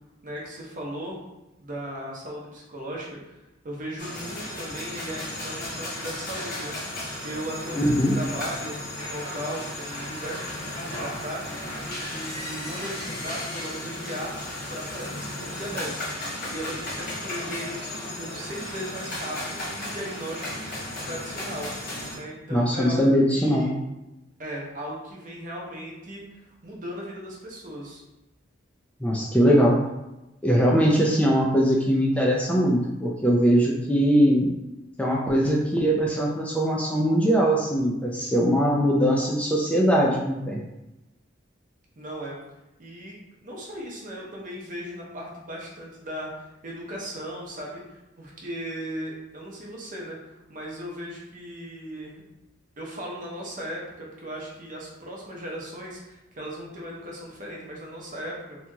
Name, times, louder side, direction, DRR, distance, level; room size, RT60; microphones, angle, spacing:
voice 1, 0.2-1.2 1.6-3.4 3.6-11.6 12.1-14.4 14.7-21.7 22.1-23.7 24.4-26.2 26.6-28.0 42.0-42.4 42.8-52.2 52.8-58.6, equal, 45° right, -3 dB, 0.7 m, -37 dB
sound 1, 4.0-22.2, left 1 dB, 50° left, 0.8 m, -35 dB
voice 2, 7.7-8.2 22.5-23.7 29.0-29.8 30.4-34.5 35.0-40.6, equal, 5° left, -3 dB, 0.3 m, -21 dB
2.8 x 2.7 x 2.3 m, 0.96 s
head